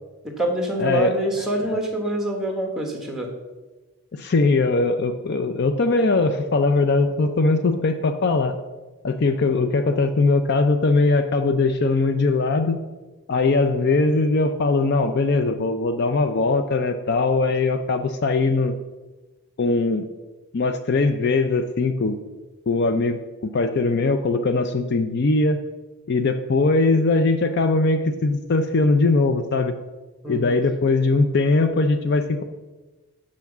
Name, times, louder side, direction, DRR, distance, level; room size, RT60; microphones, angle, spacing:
voice 1, 0.2-3.3 30.2-30.6, right 1 dB, ahead, 2 dB, 1.3 m, -25 dB
voice 2, 0.8-1.2 4.1-8.5 9.0-12.8 13.3-18.8 19.6-20.1 20.5-22.2 22.7-25.6 26.1-29.7 30.3-32.4, left 3 dB, 50° left, 9 dB, 0.4 m, -20 dB
6.4 x 5.9 x 7.1 m, 1.2 s
head